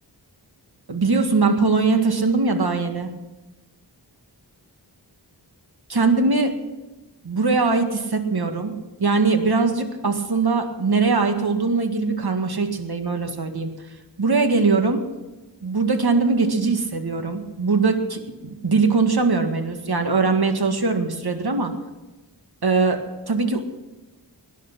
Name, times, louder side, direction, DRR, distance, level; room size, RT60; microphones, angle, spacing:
voice 1, 0.9-3.1 5.9-6.5 7.2-8.7 9.0-13.7 14.2-15.0 15.6-21.7 22.6-23.0 23.3-23.7, right 4 dB, 65° right, 6 dB, 1.9 m, -21 dB
19.0 x 10.5 x 6.1 m, 1.1 s
wide cardioid pair, 55°, 41 cm